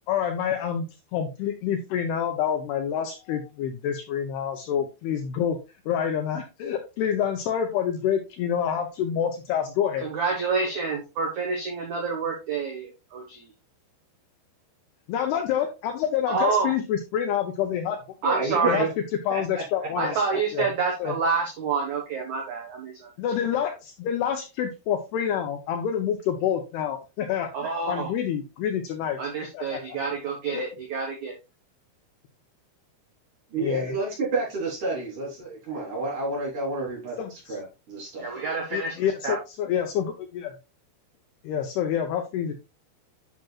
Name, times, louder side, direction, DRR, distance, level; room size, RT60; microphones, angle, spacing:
voice 1, 0.1-5.6 5.9-10.1 15.1-18.0 18.7-18.9 19.3-20.2 20.5-20.7 21.0-21.2 23.2-27.5 27.9-29.2 29.5-30.0 30.5-30.7 33.6-34.0 37.2-37.6 38.7-40.5 41.4-42.5, left 9 dB, 75° left, 5 dB, 2.4 m, -27 dB
voice 2, 10.0-13.5 16.3-16.7 18.2-18.8 20.0-23.1 27.5-28.1 29.2-31.3 38.2-39.0 39.2-39.4, right 4 dB, 65° right, 1 dB, 1.8 m, -28 dB
voice 3, 18.2-18.9 19.3-19.9 33.5-37.2 37.5-38.3, right 3 dB, 45° right, -4 dB, 4.5 m, -30 dB
10.5 x 6.1 x 2.4 m, 0.27 s
omnidirectional pair, 5.3 m